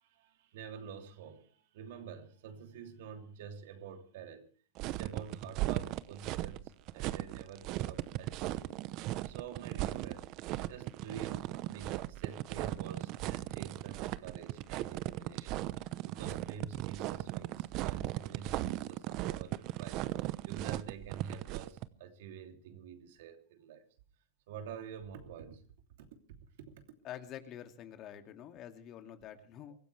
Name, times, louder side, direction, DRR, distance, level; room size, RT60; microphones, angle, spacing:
voice 1, 0.0-4.5 4.8-8.7 9.2-15.6 16.1-23.8 24.5-25.6 26.0-26.7, right 7 dB, 65° right, 2.9 m, -48 dB
sound 1, 4.8-21.8, right 16 dB, 45° right, 0.8 m, -37 dB
voice 2, 27.0-29.8, left 10 dB, 35° left, 2.4 m, -47 dB
24.5 x 15.5 x 3.4 m
hypercardioid pair, 125°, 0 cm